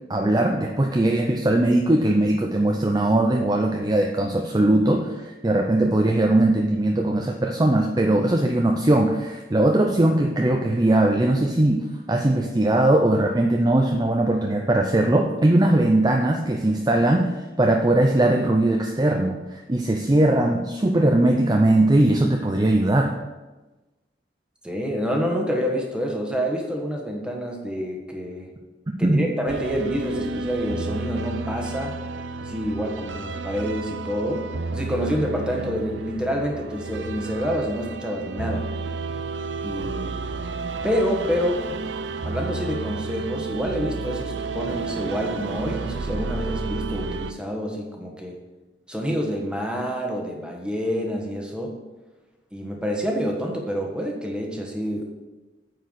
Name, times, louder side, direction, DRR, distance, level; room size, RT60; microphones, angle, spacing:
voice 1, 0.1-23.1 29.0-29.2, right 1 dB, 20° right, 2 dB, 0.5 m, -20 dB
voice 2, 24.6-28.5 29.0-32.0 32.4-34.5 34.7-38.6 39.6-40.3 40.8-41.6 42.2-48.4 48.9-51.7 52.5-55.1, equal, 5° right, 0 dB, 1.3 m, -27 dB
sound 1, 29.5-47.3, right 3 dB, 85° right, 0.5 m, -31 dB
9.1 x 4.6 x 6.4 m, 1.1 s
head